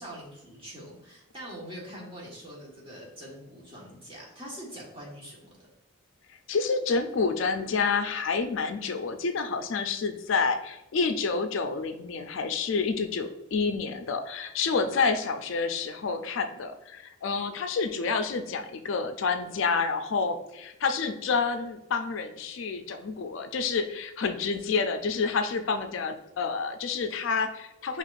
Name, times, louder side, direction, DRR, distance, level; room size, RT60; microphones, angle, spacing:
voice 1, 0.0-5.5, equal, 25° right, -5 dB, 1.3 m, -43 dB
voice 2, 6.5-28.0, left 4 dB, 70° left, 7 dB, 0.4 m, -28 dB
5.6 x 2.9 x 2.5 m, 0.88 s
head